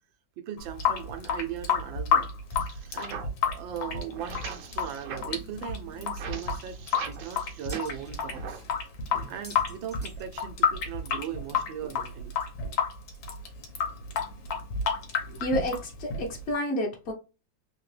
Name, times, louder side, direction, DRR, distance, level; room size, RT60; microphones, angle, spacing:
voice 1, 0.4-2.3 2.9-8.6 9.3-12.4, right 9 dB, 90° right, 1.4 m, -38 dB
Water tap faucet / Sink (filling or washing) / Drip, 0.6-16.5, left 6 dB, 85° left, 1.7 m, -30 dB
sound 1, 2.5-8.8 9.0-11.9, right 6 dB, 65° right, 0.8 m, -44 dB
sound 2, 7.1-8.1 8.7-8.8 9.2-10.8 11.1-11.2 11.4-11.5 12.4-12.5 13.1-13.2 13.8-13.9, equal, 15° left, 0.5 m, -51 dB
voice 2, 15.3-17.1, equal, 55° left, 0.7 m, -30 dB
3.8 x 2.8 x 3.2 m
omnidirectional pair, 2.0 m